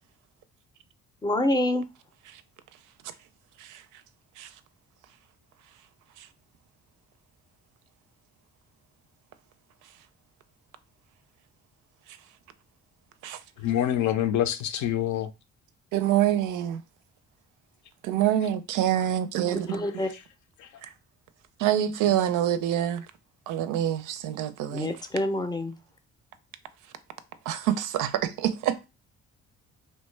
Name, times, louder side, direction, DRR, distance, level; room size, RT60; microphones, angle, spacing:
voice 1, 1.2-1.8 19.7-20.1 24.7-25.8, left 1 dB, 15° left, 0.5 m, -26 dB
voice 2, 13.6-15.3 19.7-20.2 20.6-20.7, left 11 dB, 70° left, 0.5 m, -27 dB
voice 3, 15.9-16.8 18.0-19.8 20.8-20.9 21.6-23.1 23.5-24.9 27.5-28.9, right 11 dB, 85° right, 0.5 m, -26 dB
2.9 x 2.2 x 3.2 m
cardioid pair, 90°, 30 cm